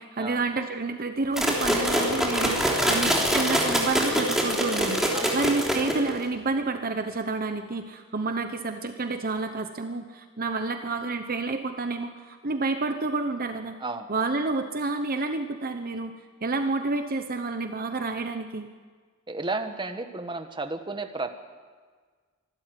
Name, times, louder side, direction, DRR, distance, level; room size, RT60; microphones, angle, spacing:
voice 1, 0.0-13.7 14.1-16.1 16.4-18.7, right 3 dB, 45° right, 7 dB, 1.0 m, -29 dB
sound 1, 1.4-6.2, equal, ahead, 3.3 m, -24 dB
voice 2, 19.3-21.4, right 3 dB, 20° right, 7 dB, 1.3 m, -33 dB
25.5 x 12.5 x 9.3 m, 1.5 s
head